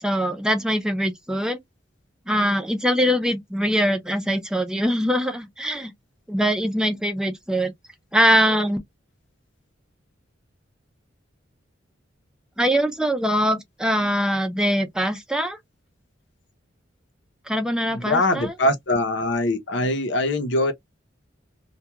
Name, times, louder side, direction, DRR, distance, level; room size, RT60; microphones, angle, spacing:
voice 1, 0.0-1.6 2.3-5.9 6.3-7.7 8.1-8.8 12.6-15.6 17.5-18.5, equal, 5° right, 0.5 m, -22 dB
voice 2, 17.9-20.7, left 1 dB, 65° left, 0.7 m, -22 dB
2.3 x 2.3 x 2.9 m
head